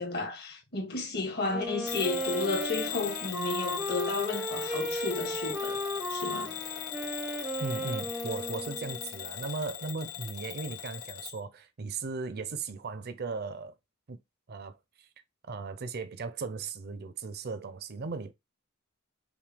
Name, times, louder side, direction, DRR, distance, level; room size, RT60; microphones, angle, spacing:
voice 1, 0.0-5.8 6.1-6.6, left 3 dB, 50° left, 1.4 m, -33 dB
Wind instrument woodwind instrument, 1.5-9.2, right 1 dB, 5° right, 0.5 m, -35 dB
Bell / Alarm, 1.9-11.4, left 11 dB, 85° left, 0.5 m, -39 dB
voice 2, 7.6-13.7 14.1-14.2 14.5-15.1 15.5-18.3, right 4 dB, 50° right, 0.6 m, -37 dB
5.9 x 2.3 x 3.3 m
head